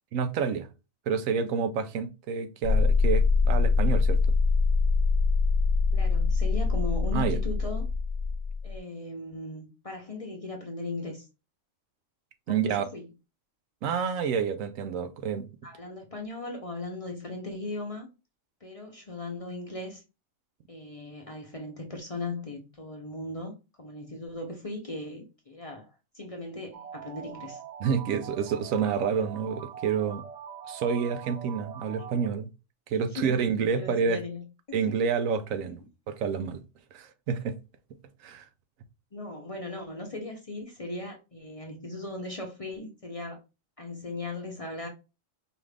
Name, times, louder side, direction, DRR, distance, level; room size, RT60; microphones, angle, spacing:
voice 1, 0.1-0.7 1.1-4.2 7.1-7.4 12.5-12.8 13.8-15.5 27.8-30.2 30.7-32.5 32.9-34.2 34.7-35.8 36.1-36.6 36.9-37.6 38.2-38.5, right 6 dB, 80° right, 1.0 m, -28 dB
sound 1, 2.6-8.8, left 4 dB, 75° left, 0.3 m, -24 dB
voice 2, 5.9-7.9 8.6-11.3 12.5-13.1 15.6-18.1 18.6-20.0 20.7-23.5 23.8-25.9 26.1-27.6 32.9-33.3 33.8-34.4 34.7-34.8 35.6-35.7 39.1-43.4 43.8-44.9, left 2 dB, 35° left, 0.6 m, -38 dB
Electronic glitter, 26.7-32.3, right 8 dB, 55° right, 0.4 m, -43 dB
4.9 x 2.5 x 3.3 m
omnidirectional pair, 1.4 m